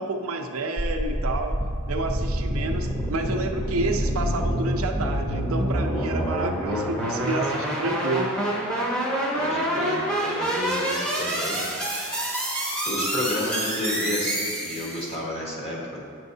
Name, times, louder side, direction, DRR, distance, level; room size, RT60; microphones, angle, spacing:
voice 1, 0.0-1.6 1.9-8.3, right 2 dB, 70° right, 4 dB, 0.5 m, -29 dB
sound 1, 0.8-15.2, right 1 dB, 5° left, 0.9 m, -27 dB
voice 2, 9.3-11.6 12.8-16.0, left 1 dB, 30° left, -3 dB, 1.2 m, -31 dB
8.5 x 6.1 x 2.7 m, 2.2 s
head